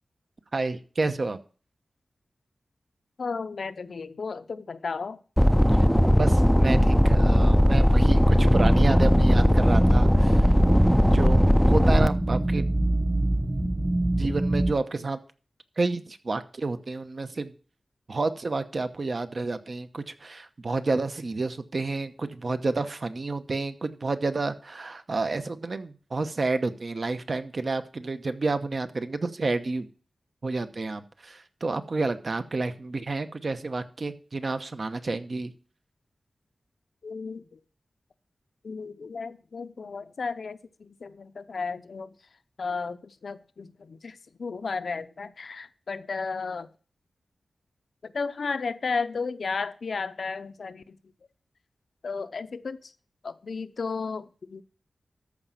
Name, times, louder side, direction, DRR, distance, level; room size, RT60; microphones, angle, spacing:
voice 1, 0.5-1.4 5.7-5.8 6.1-10.5 11.1-12.7 14.2-15.2 15.8-17.5 18.1-29.9 30.4-35.5, right 3 dB, 50° right, 0.9 m, -30 dB
voice 2, 3.2-5.2 37.0-37.6 38.6-42.1 42.6-46.7 48.0-51.0 52.0-52.9 53.2-54.6, left 4 dB, 70° left, 0.6 m, -34 dB
sound 1, 5.4-12.1, equal, ahead, 0.5 m, -18 dB
sound 2, 8.5-14.7, right 1 dB, 25° right, 1.4 m, -26 dB
13.5 x 5.1 x 5.7 m
wide cardioid pair, 100°, 0 cm